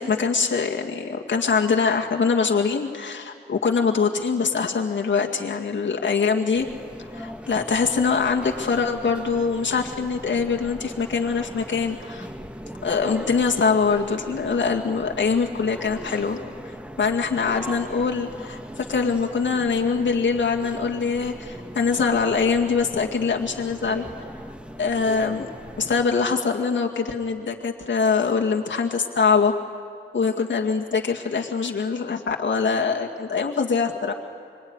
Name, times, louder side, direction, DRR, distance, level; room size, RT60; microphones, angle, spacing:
voice 1, 0.0-6.7 7.1-12.3 12.8-16.4 16.7-24.1 24.8-25.5 25.8-29.5 30.1-34.1, left 5 dB, 70° left, 1 dB, 2.1 m, -23 dB
sound 1, 6.5-26.0, equal, 5° right, 1.3 m, -39 dB
25.0 x 24.5 x 9.7 m, 2.2 s
wide cardioid pair, 115°, 20 cm